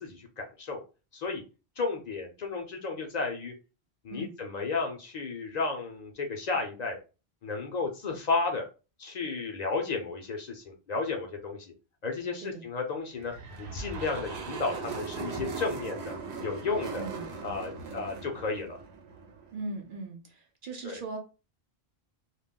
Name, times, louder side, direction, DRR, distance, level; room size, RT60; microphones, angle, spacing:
voice 1, 0.0-0.8 1.1-1.4 1.8-3.5 4.0-7.0 7.4-8.6 9.0-11.7 12.0-13.3 13.6-16.1 16.4-17.0 17.4-18.8 20.8-21.0, left 4 dB, 50° left, 2 dB, 0.6 m, -33 dB
sound 1, 13.2-19.6, right 5 dB, 90° right, 0.9 m, -39 dB
voice 2, 16.9-17.3 19.5-21.2, right 2 dB, 60° right, 3 dB, 0.7 m, -39 dB
2.3 x 2.0 x 3.5 m, 0.32 s
omnidirectional pair, 1.1 m